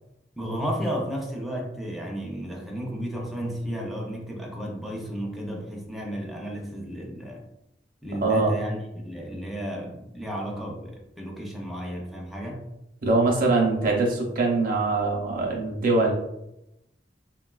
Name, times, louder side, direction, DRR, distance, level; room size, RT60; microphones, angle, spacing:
voice 1, 0.4-7.4 8.0-12.6, equal, ahead, -1 dB, 0.4 m, -33 dB
voice 2, 8.2-8.5 13.0-16.1, right 3 dB, 50° right, 0 dB, 0.6 m, -23 dB
3.5 x 2.2 x 2.2 m, 0.86 s
head